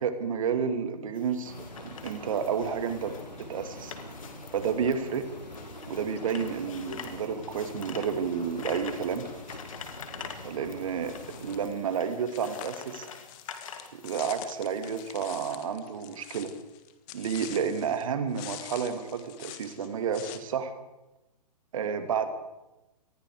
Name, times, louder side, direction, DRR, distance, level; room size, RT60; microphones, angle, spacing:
voice 1, 0.0-3.9 4.5-5.2 5.9-9.3 10.4-11.1 11.4-13.1 13.9-16.5 17.1-20.7 21.7-22.3, right 7 dB, 55° right, 8 dB, 2.6 m, -31 dB
sound 1, 1.1-15.6, left 7 dB, 50° left, 2.6 m, -46 dB
sound 2, 1.4-11.7, left 1 dB, 90° left, 2.5 m, -44 dB
sound 3, 11.0-11.7 12.3-18.0 18.3-20.4, left 13 dB, 30° left, 1.7 m, -45 dB
27.0 x 20.0 x 5.0 m, 1.0 s
figure-of-eight pair, 120°, 21 cm